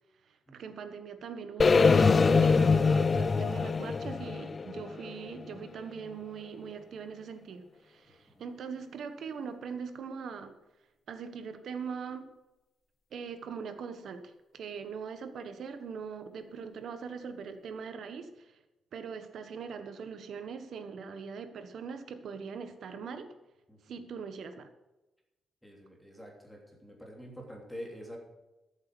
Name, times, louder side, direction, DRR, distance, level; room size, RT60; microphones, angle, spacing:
voice 1, 0.2-10.6 11.1-12.3 13.1-18.6 18.9-23.3 23.8-24.7, right 6 dB, 70° right, 9 dB, 1.3 m, -41 dB
sound 1, 1.6-5.6, left 4 dB, 35° left, 0.4 m, -24 dB
voice 2, 25.6-28.2, equal, ahead, -1 dB, 3.1 m, -46 dB
13.5 x 8.1 x 6.2 m, 1.0 s
cardioid pair, 125°, 0 cm